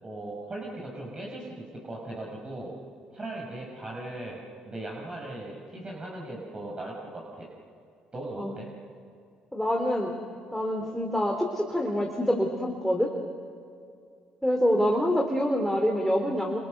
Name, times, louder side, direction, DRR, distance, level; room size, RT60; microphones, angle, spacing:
voice 1, 0.0-2.8 3.1-7.5 8.1-8.7, right 1 dB, 30° right, -2 dB, 6.4 m, -38 dB
voice 2, 9.5-10.1 10.5-13.1 14.4-16.6, equal, ahead, 1 dB, 3.3 m, -26 dB
28.5 x 27.5 x 6.7 m, 2.4 s
hypercardioid pair, 60°, 3 cm